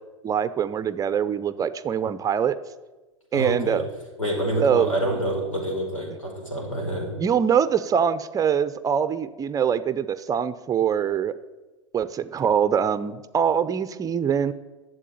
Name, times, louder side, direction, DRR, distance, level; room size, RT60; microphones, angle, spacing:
voice 1, 0.2-2.6 3.3-3.9 4.6-4.9 7.2-11.3 11.9-14.5, right 8 dB, 20° right, 13 dB, 0.7 m, -23 dB
voice 2, 3.3-3.8 4.2-7.1, right 1 dB, 85° left, 0 dB, 5.1 m, -27 dB
12.0 x 7.8 x 9.4 m, 1.2 s
figure-of-eight pair, 90°, 16 cm